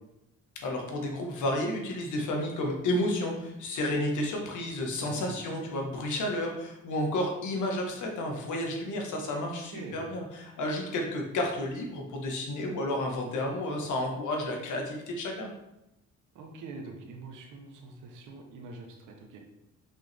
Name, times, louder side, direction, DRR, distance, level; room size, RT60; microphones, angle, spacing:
voice 1, 0.6-15.5, left 1 dB, 75° left, 1 dB, 1.6 m, -31 dB
voice 2, 5.0-5.3 9.4-10.0 16.3-19.4, right 3 dB, 85° right, 2 dB, 1.1 m, -44 dB
6.1 x 5.6 x 3.5 m, 0.88 s
cardioid pair, 90°, 30 cm